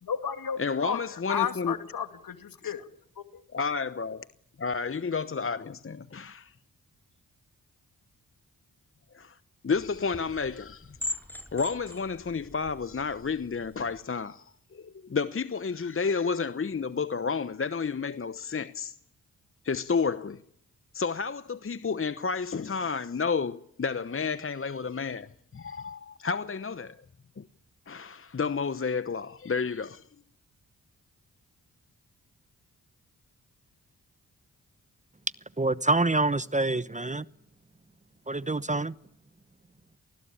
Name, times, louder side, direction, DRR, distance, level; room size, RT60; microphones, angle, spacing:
voice 1, 0.0-1.0 1.3-2.8, left 8 dB, 65° left, 2.5 m, -32 dB
voice 2, 0.6-1.7 2.6-2.7 3.5-4.3 4.6-6.5 9.1-9.4 9.6-11.0 11.5-19.0 19.6-20.4 20.9-27.0 27.4-27.5 27.9-30.0, left 5 dB, 35° left, 1.0 m, -31 dB
sound 1, 9.7-14.0, left 1 dB, 5° left, 6.5 m, -41 dB
voice 3, 35.6-37.2 38.3-38.9, right 2 dB, 20° right, 1.0 m, -26 dB
29.0 x 20.0 x 8.8 m
supercardioid pair, 40°, 37 cm